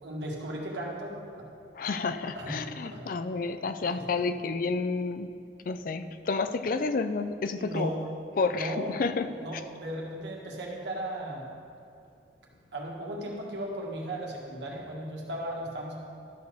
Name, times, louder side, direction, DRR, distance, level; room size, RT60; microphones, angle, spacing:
voice 1, 0.0-1.4 2.4-2.6 2.8-3.0 3.9-4.0 7.5-8.0 8.5-8.9 9.4-11.4 12.7-16.0, right 1 dB, 85° right, -2 dB, 1.7 m, -36 dB
voice 2, 1.7-5.3 5.7-7.9 8.4-9.3, left 4 dB, 50° left, 10 dB, 0.4 m, -30 dB
12.0 x 4.2 x 6.8 m, 2.5 s
head